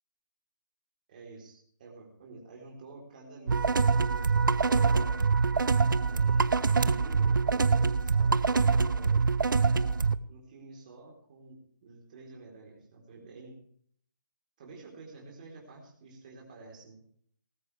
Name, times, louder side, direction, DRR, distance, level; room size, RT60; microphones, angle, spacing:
voice 1, 1.1-3.7 4.1-5.2 6.0-9.3 10.3-13.6 14.6-17.0, right 3 dB, 25° right, -2 dB, 4.0 m, -49 dB
sound 1, 3.5-10.1, right 4 dB, 80° right, 0.8 m, -25 dB
19.0 x 13.0 x 3.5 m, 0.62 s
hypercardioid pair, 175°, 11 cm